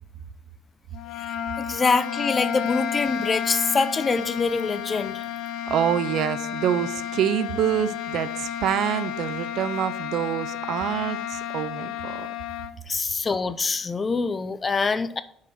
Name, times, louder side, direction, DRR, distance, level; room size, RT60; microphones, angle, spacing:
sound 1, 0.9-12.8, left 9 dB, 75° left, 0.4 m, -32 dB
voice 1, 1.6-5.2 12.9-15.2, left 4 dB, 25° left, 12 dB, 0.5 m, -25 dB
voice 2, 5.7-12.3, right 10 dB, 70° right, 14 dB, 0.5 m, -26 dB
5.6 x 4.8 x 6.1 m, 0.65 s
cardioid pair, 120°, 0 cm